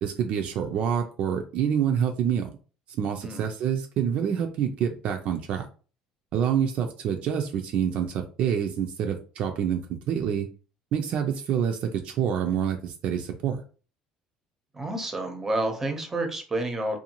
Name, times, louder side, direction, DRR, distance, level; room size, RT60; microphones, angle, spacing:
voice 1, 0.0-2.5 3.0-5.7 6.3-10.5 10.9-13.6, right 8 dB, 60° right, 4 dB, 0.4 m, -27 dB
voice 2, 14.7-17.0, right 2 dB, 15° right, 4 dB, 0.7 m, -29 dB
2.6 x 2.3 x 2.9 m, 0.37 s
cardioid pair, 110°, 2 cm